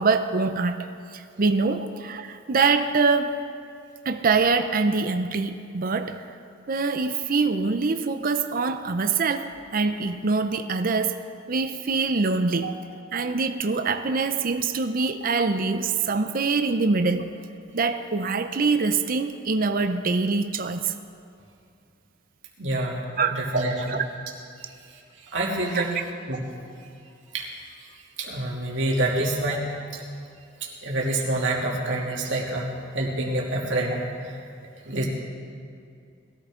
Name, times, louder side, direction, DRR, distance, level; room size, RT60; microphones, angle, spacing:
voice 1, 0.0-3.4 4.1-6.3 6.7-12.7 13.1-17.3 17.7-20.9 23.2-23.5 23.9-24.0 25.7-25.8 29.1-29.2, right 4 dB, 50° right, 8 dB, 0.6 m, -24 dB
voice 2, 22.6-23.0 23.4-23.9 25.3-25.9 26.3-26.4 27.3-27.5 28.2-29.6 29.9-30.0 30.6-34.4 34.8-35.1, right 2 dB, 70° right, -3 dB, 2.7 m, -27 dB
21.0 x 13.5 x 3.8 m, 2.5 s
head